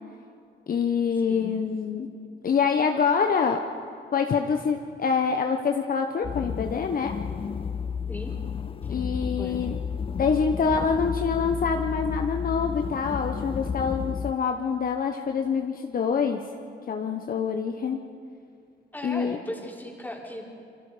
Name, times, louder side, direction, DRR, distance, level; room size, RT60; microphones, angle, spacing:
voice 1, 0.7-2.1 2.4-3.6 4.1-7.1 8.9-9.8 10.2-16.4 16.9-18.0 19.0-19.4, left 6 dB, 45° left, 4 dB, 1.2 m, -25 dB
sound 1, 6.2-14.3, left 6 dB, 25° left, 0.6 m, -32 dB
voice 2, 18.9-20.5, left 1 dB, 10° left, -1 dB, 4.5 m, -37 dB
29.0 x 23.0 x 5.1 m, 2.5 s
cardioid pair, 90°, 20 cm